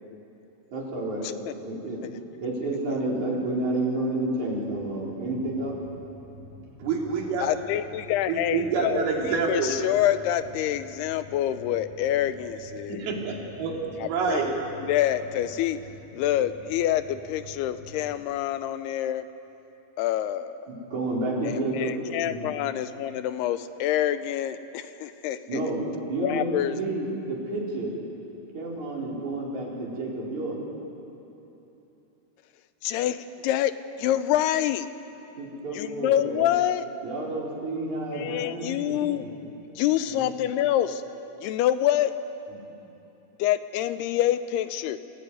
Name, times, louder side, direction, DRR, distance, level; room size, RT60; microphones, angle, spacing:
voice 1, 0.7-1.3 1.6-2.1 2.4-5.8 20.7-22.5 25.5-25.8 26.1-27.9 28.5-30.6 35.4-36.5 37.0-39.3 40.2-40.3, right 2 dB, 50° right, -4 dB, 5.5 m, -30 dB
voice 2, 1.2-1.5 2.0-2.1 2.6-3.0 7.4-9.1 9.5-13.1 14.0-14.4 14.8-15.8 16.1-19.3 20.0-20.7 21.4-25.7 26.2-26.8 32.8-33.7 34.0-34.9 35.7-36.9 38.1-39.3 39.7-41.0 41.4-42.1 43.4-45.0, left 12 dB, 85° left, 12 dB, 2.8 m, -26 dB
sound 1, 4.7-18.2, equal, 50° left, 6.1 m, -47 dB
voice 3, 6.8-7.5 8.3-9.8 12.9-14.5, right 5 dB, 75° right, -1 dB, 4.6 m, -27 dB
27.0 x 16.5 x 9.4 m, 3.0 s
omnidirectional pair, 4.6 m